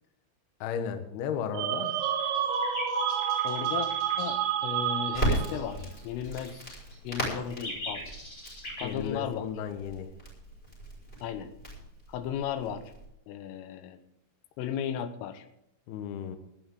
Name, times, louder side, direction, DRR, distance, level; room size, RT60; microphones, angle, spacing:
voice 1, 0.6-2.0 8.8-10.1 15.9-16.4, left 7 dB, 70° left, 8 dB, 2.7 m, -34 dB
sound 1, 1.5-5.7, right 8 dB, 85° right, 3.8 m, -29 dB
sound 2, 1.8-4.4 5.1-8.8, left 1 dB, 30° left, 6.9 m, -42 dB
voice 2, 3.4-3.9 4.2-6.6 7.0-8.1 8.8-9.4 11.2-11.5 12.1-12.9 13.3-14.0 14.6-15.5, left 8 dB, 85° left, 10 dB, 3.5 m, -35 dB
Crackle, 5.1-13.1, right 1 dB, 10° left, 5.8 m, -37 dB
19.0 x 12.0 x 3.8 m, 0.78 s
omnidirectional pair, 5.8 m